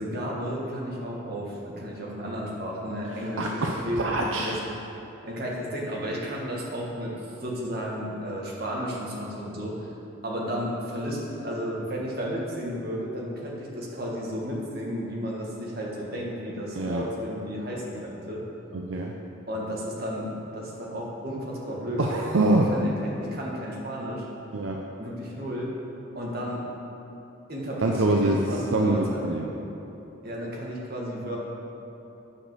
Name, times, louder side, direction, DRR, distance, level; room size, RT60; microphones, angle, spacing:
voice 1, 0.0-4.6 5.2-7.1 7.4-9.9 10.2-18.4 19.5-22.3 22.7-24.2 25.0-25.7 26.1-26.6 27.5-29.5 30.2-31.4, equal, 50° right, -4 dB, 1.6 m, -33 dB
voice 2, 3.2-3.7 4.0-4.6 16.7-17.0 18.7-19.1 22.0-22.7 24.5-24.8 27.8-28.4 28.7-29.5, right 2 dB, 75° right, 0 dB, 0.5 m, -24 dB
8.8 x 5.1 x 6.1 m, 3.0 s
head